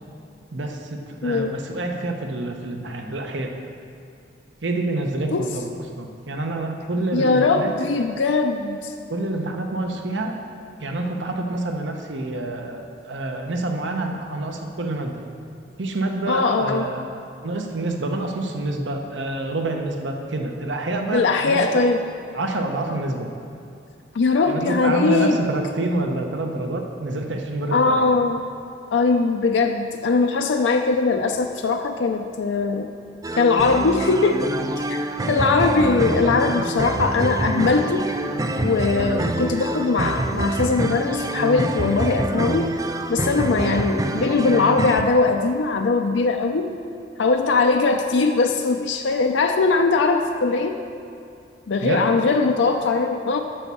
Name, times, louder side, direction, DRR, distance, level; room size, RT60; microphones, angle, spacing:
voice 1, 0.5-3.6 4.6-5.7 6.0-7.7 9.1-10.4 10.8-15.2 15.8-17.1 17.4-21.6 22.3-23.3 24.5-28.1 36.2-36.7 51.8-52.1, right 2 dB, 80° right, 3 dB, 0.9 m, -27 dB
voice 2, 1.2-1.5 5.3-5.5 7.1-8.9 16.3-16.9 21.1-22.0 24.1-25.4 27.7-28.4 28.9-32.9 33.4-34.5 34.9-35.0 35.3-38.1 38.6-42.7 43.1-46.7 47.2-50.8 51.7-53.4, left 4 dB, 80° left, 4 dB, 0.5 m, -20 dB
sound 1, 33.2-45.0, right 2 dB, 20° right, 0.3 m, -26 dB
8.9 x 6.2 x 6.9 m, 2.5 s
head